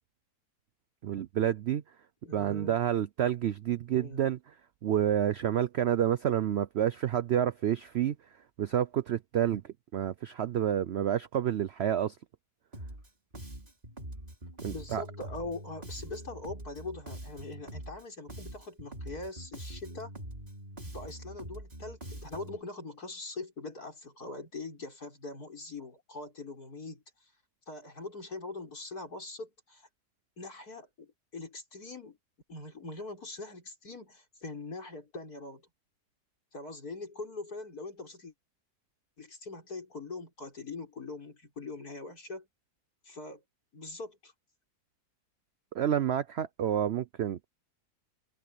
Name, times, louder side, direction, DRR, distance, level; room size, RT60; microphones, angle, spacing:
voice 1, 1.0-1.8 2.3-4.4 4.8-8.1 8.6-12.2 14.6-15.0 45.7-47.5, right 10 dB, 65° right, 0.6 m, -29 dB
voice 2, 2.2-2.8 3.9-4.3 14.7-20.1 20.8-27.3 27.7-29.9 30.4-32.2 32.5-35.7 36.5-38.3 39.2-42.5 43.0-43.4 43.7-44.3, left 3 dB, 65° left, 6.3 m, -42 dB
Bass guitar, 12.7-13.1 13.3-18.0 18.3-22.6, right 1 dB, 30° right, 4.1 m, -44 dB
omnidirectional pair, 1.7 m